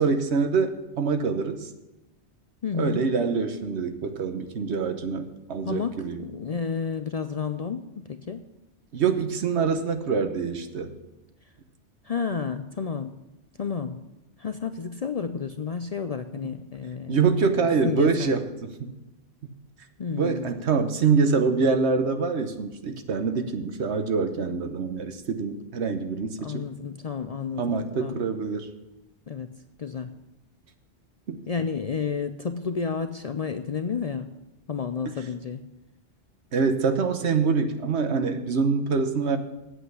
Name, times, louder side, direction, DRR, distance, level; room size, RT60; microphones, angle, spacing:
voice 1, 0.0-1.7 2.8-6.2 8.9-10.9 17.1-18.4 18.8-18.9 20.2-26.6 27.6-28.7 31.3-31.4 36.5-39.4, right 5 dB, 75° right, 7 dB, 1.3 m, -25 dB
voice 2, 2.6-3.1 5.6-8.4 12.0-13.2 13.6-14.0 14.4-17.2 17.5-18.3 20.0-20.5 26.4-28.2 29.3-30.2 31.5-34.3 34.7-35.6, left 6 dB, 50° left, 9 dB, 0.4 m, -31 dB
8.0 x 8.0 x 8.2 m, 1.0 s
omnidirectional pair, 1.1 m